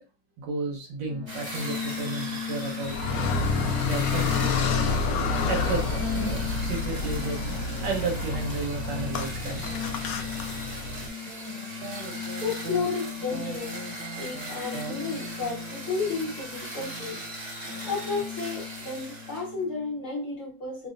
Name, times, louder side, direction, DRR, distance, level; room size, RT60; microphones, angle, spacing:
voice 1, 0.4-3.0 3.8-4.7 5.5-9.7, right 3 dB, 90° right, 1.8 m, -33 dB
sound 1, 1.1-20.0, left 5 dB, 65° right, 1.7 m, -38 dB
sound 2, 1.3-19.5, right 1 dB, 30° right, 0.8 m, -40 dB
Car, 2.8-11.1, left 4 dB, 70° left, 1.0 m, -28 dB
voice 2, 12.4-13.8 14.2-17.2 17.8-20.9, left 4 dB, 45° left, 1.7 m, -32 dB
5.4 x 2.1 x 2.5 m
omnidirectional pair, 1.9 m